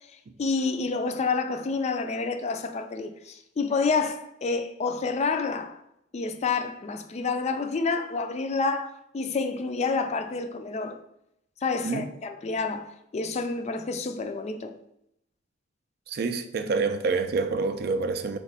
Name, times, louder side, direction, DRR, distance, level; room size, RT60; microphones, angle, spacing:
voice 1, 0.4-5.8 6.1-11.0 11.6-14.7, left 4 dB, 35° left, 0.4 m, -28 dB
voice 2, 16.1-18.4, right 4 dB, 55° right, 0.4 m, -27 dB
4.3 x 3.0 x 4.1 m
head